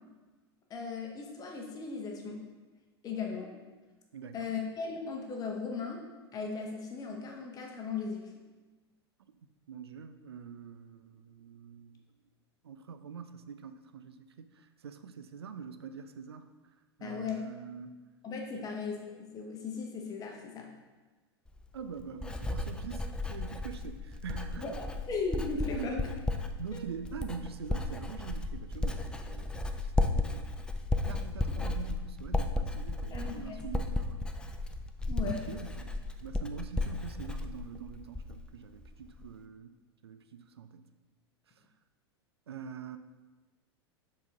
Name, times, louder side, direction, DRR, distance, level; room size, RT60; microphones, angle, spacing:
voice 1, 0.7-2.4 3.0-3.5 4.3-6.0 6.3-8.3 17.0-17.5 18.2-20.7 24.6-26.0 33.1-33.6 35.1-35.4, left 5 dB, 25° left, 1 dB, 1.0 m, -37 dB
voice 2, 4.1-4.6 9.4-12.0 12.6-16.5 17.0-18.0 18.5-18.7 21.7-24.8 25.7-25.9 26.3-30.5 31.1-34.2 35.2-35.9 36.2-39.7 40.0-40.9 41.5-41.6 42.5-43.0, right 6 dB, 70° right, 10 dB, 0.4 m, -44 dB
Writing, 21.5-38.5 38.8-39.3, left 2 dB, 5° left, 0.4 m, -34 dB
7.0 x 4.3 x 3.6 m, 1.3 s
figure-of-eight pair, 85°, 14 cm